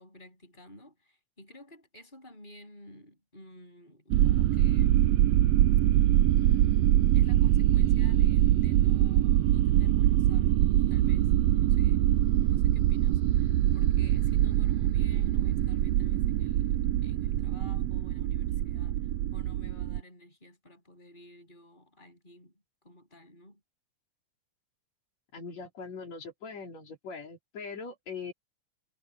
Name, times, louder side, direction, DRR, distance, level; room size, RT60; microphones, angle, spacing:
voice 1, 0.0-5.2 6.3-23.6, left 1 dB, 15° left, 8.1 m, -52 dB
sound 1, 4.1-20.0, right 13 dB, 75° right, 1.6 m, -24 dB
voice 2, 25.3-28.3, left 5 dB, 65° left, 4.5 m, -41 dB
omnidirectional pair, 3.4 m